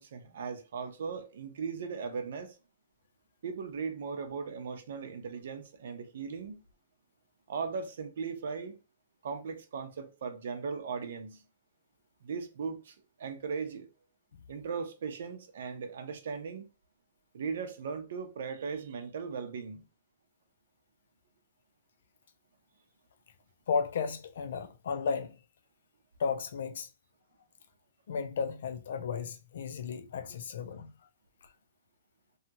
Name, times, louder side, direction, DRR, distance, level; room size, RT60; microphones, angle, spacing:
voice 1, 0.0-2.6 3.4-6.6 7.5-8.8 9.2-11.4 12.2-13.9 14.5-16.7 17.3-19.8, right 5 dB, 65° right, 0.7 m, -38 dB
voice 2, 23.7-25.4 26.2-26.9 28.1-30.9, left 6 dB, 70° left, 0.5 m, -34 dB
2.8 x 2.4 x 2.8 m
hypercardioid pair, 165°, 0 cm